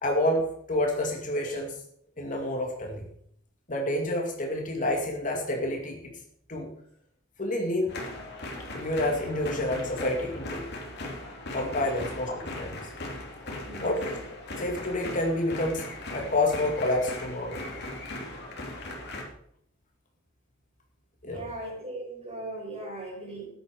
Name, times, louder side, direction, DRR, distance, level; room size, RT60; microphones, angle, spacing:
voice 1, 0.0-1.8 2.2-3.0 3.7-6.0 6.5-6.7 7.4-7.9 8.7-10.7 11.5-12.8 13.8-14.2 14.6-17.6 21.2-21.5, left 1 dB, 40° left, 1 dB, 2.3 m, -28 dB
sound 1, 7.9-19.2, left 1 dB, 60° left, 2.8 m, -38 dB
voice 2, 13.5-14.1 21.2-23.5, right 2 dB, 30° right, -2 dB, 5.8 m, -39 dB
14.5 x 10.0 x 5.0 m, 0.68 s
head